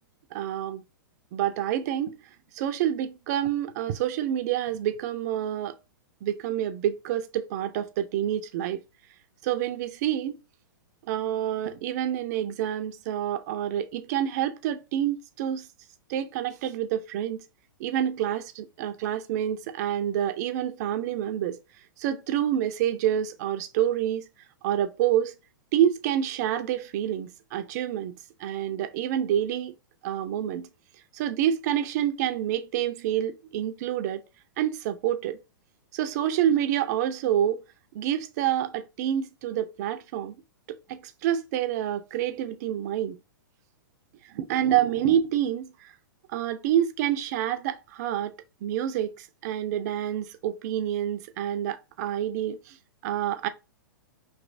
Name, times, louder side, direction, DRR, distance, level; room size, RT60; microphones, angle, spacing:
voice 1, 0.3-0.8 1.3-2.2 2.6-5.8 6.2-8.8 9.4-10.4 11.1-15.7 16.1-17.4 17.8-21.6 22.0-24.3 24.6-25.3 25.7-28.1 28.4-29.7 30.0-30.7 31.1-34.2 34.6-35.4 35.9-37.6 37.9-40.4 40.9-43.2 44.2-45.9 46.3-48.3 48.6-52.8 53.0-53.5, right 10 dB, 50° right, 0.5 m, -27 dB
3.1 x 2.8 x 2.6 m
hypercardioid pair, 115°, 12 cm